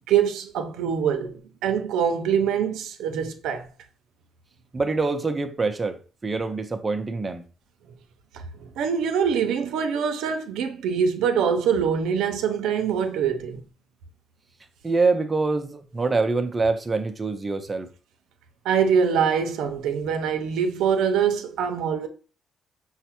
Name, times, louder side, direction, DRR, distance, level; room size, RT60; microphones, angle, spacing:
voice 1, 0.1-3.7 8.8-13.6 18.7-22.1, right 7 dB, 85° right, 0.5 m, -24 dB
voice 2, 4.7-7.4 14.8-17.9, right 3 dB, 25° right, 0.5 m, -25 dB
5.5 x 2.0 x 2.9 m
cardioid pair, 90°, 0 cm